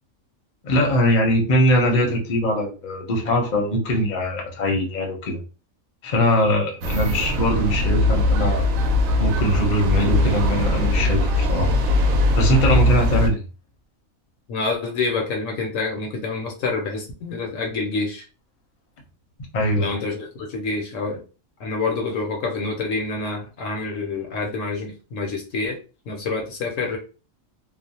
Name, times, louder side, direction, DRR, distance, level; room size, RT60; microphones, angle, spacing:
voice 1, 0.6-5.4 6.0-8.6 9.2-11.7 12.3-13.4 19.5-19.9, left 1 dB, 40° left, 1 dB, 0.7 m, -21 dB
sound 1, 6.8-13.3, left 1 dB, 75° right, 1.0 m, -20 dB
voice 2, 14.5-18.2 19.7-21.2 21.6-25.8 26.1-27.0, left 3 dB, 70° left, 2 dB, 0.9 m, -27 dB
2.4 x 2.0 x 2.7 m, 0.33 s
omnidirectional pair, 1.4 m